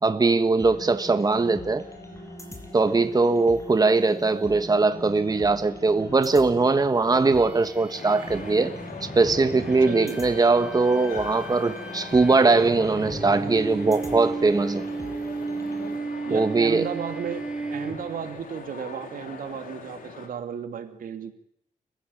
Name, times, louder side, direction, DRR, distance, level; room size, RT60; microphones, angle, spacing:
voice 1, 0.0-1.8 2.7-8.8 9.1-14.9 16.3-16.9, right 3 dB, 25° right, 10 dB, 1.4 m, -21 dB
sound 1, 0.6-16.0, left 1 dB, 20° left, 6.5 m, -42 dB
sound 2, 7.4-18.4, right 3 dB, 5° right, 3.0 m, -35 dB
sound 3, 8.0-20.3, left 5 dB, 85° left, 3.9 m, -42 dB
voice 2, 9.9-10.2 16.2-17.4 17.7-21.3, right 7 dB, 80° right, 7 dB, 2.8 m, -34 dB
30.0 x 15.5 x 8.9 m, 0.73 s
cardioid pair, 95°, 14 cm